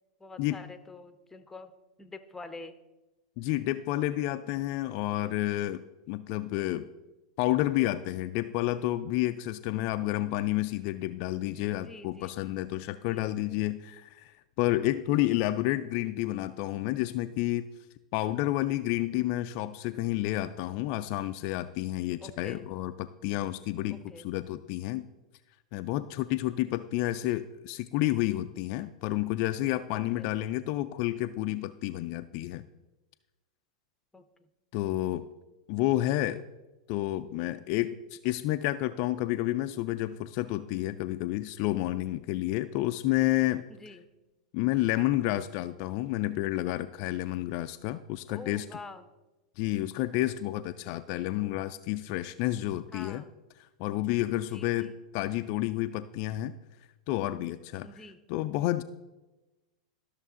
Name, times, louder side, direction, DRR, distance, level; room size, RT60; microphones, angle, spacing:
voice 1, 0.2-1.7 2.0-2.8 11.7-12.4 12.8-13.3 15.2-15.4 22.2-22.6 23.9-24.3 29.9-30.3 34.1-34.3 43.8-44.1 48.3-49.1 52.9-53.4 54.5-54.9 57.8-58.2, left 3 dB, 10° left, 11 dB, 0.7 m, -46 dB
voice 2, 3.4-5.8 6.1-6.9 7.4-17.7 18.1-25.1 25.7-32.6 34.7-35.3 35.7-36.4 36.9-43.7 44.5-48.7 49.6-53.2 53.8-56.5 57.1-57.9 58.3-58.8, left 15 dB, 50° left, 10 dB, 0.3 m, -30 dB
13.0 x 6.4 x 3.7 m, 1.1 s
hypercardioid pair, 95°, 3 cm